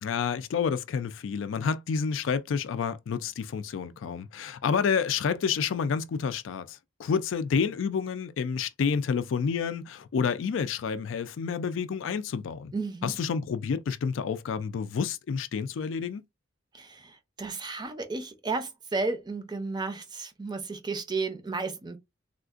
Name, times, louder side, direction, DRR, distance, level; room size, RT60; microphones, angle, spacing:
voice 1, 0.0-12.7 13.0-16.2, left 6 dB, 70° left, 0.3 m, -29 dB
voice 2, 12.7-13.1 16.7-22.0, right 3 dB, 20° right, 0.5 m, -33 dB
3.6 x 2.4 x 2.4 m
head